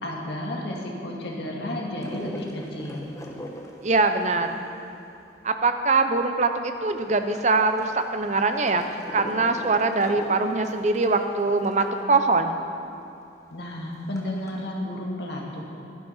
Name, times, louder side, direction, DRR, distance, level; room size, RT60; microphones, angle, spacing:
voice 1, 0.0-3.1 13.5-15.6, left 1 dB, 65° left, -2 dB, 2.0 m, -32 dB
sound 1, 2.0-6.0 6.4-6.5 6.7-12.0 12.4-12.5 12.7-12.8 13.3-14.6, equal, 15° left, 1.0 m, -42 dB
voice 2, 3.8-4.6 5.4-12.6, right 3 dB, 40° right, 7 dB, 0.7 m, -23 dB
11.0 x 11.0 x 5.7 m, 2.6 s
head